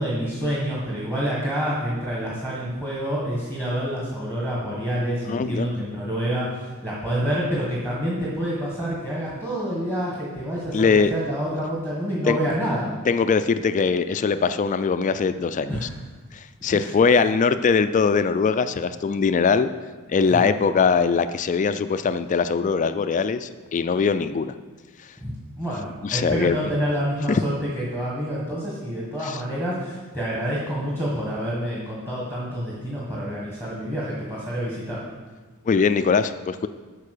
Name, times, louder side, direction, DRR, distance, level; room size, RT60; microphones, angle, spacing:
voice 1, 0.0-12.9 15.7-15.9 16.7-16.9 20.3-20.5 25.2-35.0, equal, 10° right, -6 dB, 1.6 m, -28 dB
voice 2, 5.3-5.7 10.7-11.1 12.3-12.4 13.1-15.9 16.3-19.7 20.1-24.5 26.0-26.6 27.3-27.4 29.2-29.4 35.7-36.7, left 5 dB, 35° left, 11 dB, 0.3 m, -21 dB
8.4 x 5.3 x 6.7 m, 1.3 s
head